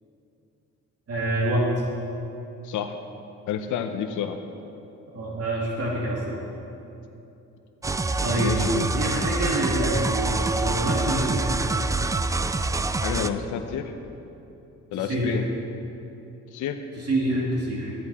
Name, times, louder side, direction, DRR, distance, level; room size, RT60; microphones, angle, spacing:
voice 1, 1.1-1.7 5.1-6.4 8.2-8.6 8.9-11.6 14.9-15.4 16.9-17.9, right 1 dB, 50° right, -4 dB, 2.6 m, -26 dB
voice 2, 2.6-3.0 3.5-4.4 8.4-8.9 13.0-13.9 14.9-15.4 16.5-16.8, left 8 dB, 80° left, 6 dB, 0.8 m, -29 dB
sound 1, 7.8-13.3, right 3 dB, 10° right, 0.3 m, -26 dB
14.0 x 9.5 x 4.2 m, 2.9 s
cardioid pair, 90°, 30 cm